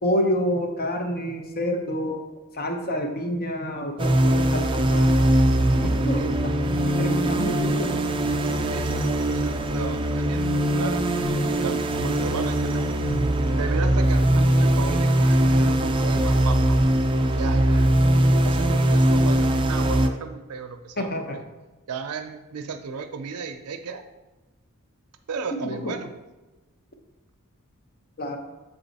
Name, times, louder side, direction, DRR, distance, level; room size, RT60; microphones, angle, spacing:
voice 1, 0.0-2.2 2.6-5.1 5.7-6.3 6.9-7.9 21.1-21.4 25.7-25.9 28.2-28.4, equal, 45° left, 4 dB, 0.8 m, -28 dB
sound 1, 4.0-20.1, right 1 dB, 25° right, 0.4 m, -21 dB
voice 2, 6.0-6.4 8.7-11.0 11.6-13.0 13.6-16.8 17.4-17.9 18.4-21.4 21.9-24.0 25.3-26.1, right 5 dB, 85° right, 6 dB, 0.5 m, -34 dB
7.0 x 3.9 x 4.0 m, 1.1 s
head